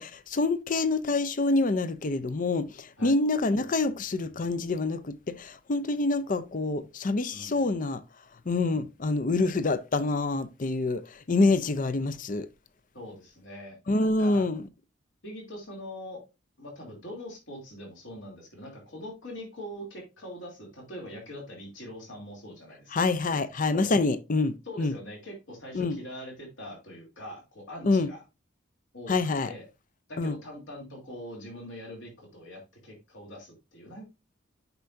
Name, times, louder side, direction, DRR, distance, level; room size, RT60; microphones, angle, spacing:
voice 1, 0.0-8.0 8.5-11.0 11.3-12.5 13.9-14.7 22.9-24.9 25.7-26.0 27.8-28.1 29.1-29.5 30.2-30.4, left 3 dB, 40° left, 0.6 m, -26 dB
voice 2, 7.3-7.8 8.6-8.8 12.9-14.4 15.2-16.2 16.6-22.9 23.7-24.0 24.6-28.2 28.9-29.1 29.4-29.6 30.1-34.0, left 1 dB, 65° left, 3.0 m, -43 dB
8.1 x 5.6 x 2.6 m
head